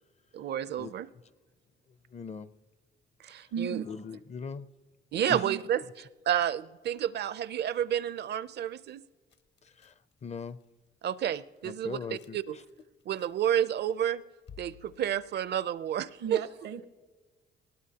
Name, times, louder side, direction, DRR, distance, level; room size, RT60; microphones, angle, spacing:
voice 1, 0.3-1.1 3.2-3.8 5.1-5.8 6.3-9.0 11.0-12.0 12.3-12.5 13.1-14.2 14.6-16.4, right 10 dB, 55° right, 0.5 m, -30 dB
voice 2, 1.9-2.5 3.4-3.5 3.8-4.7 5.3-5.5 9.6-10.6 11.6-12.6, left 5 dB, 35° left, 0.5 m, -41 dB
voice 3, 3.5-3.9 5.3-5.6 16.2-16.8, right 6 dB, 85° right, 0.9 m, -35 dB
sound 1, 9.3-10.8 11.1-11.2 11.6-12.3 12.6-13.8 14.1-16.2, left 7 dB, 60° left, 1.1 m, -55 dB
20.5 x 18.5 x 2.8 m
cardioid pair, 90°, 20 cm